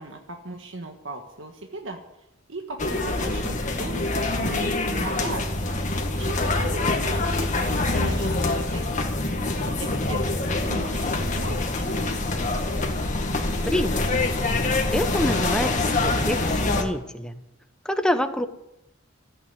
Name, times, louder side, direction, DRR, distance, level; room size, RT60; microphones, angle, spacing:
voice 1, 0.0-2.0 2.5-5.5 6.1-9.1 9.8-12.2, right 2 dB, 75° right, 3 dB, 1.5 m, -37 dB
sound 1, 2.8-16.8, left 2 dB, 40° left, 1.7 m, -25 dB
voice 2, 13.6-14.0 14.9-17.4 17.8-18.5, equal, 5° left, 8 dB, 0.9 m, -26 dB
14.0 x 9.0 x 9.5 m, 0.87 s
head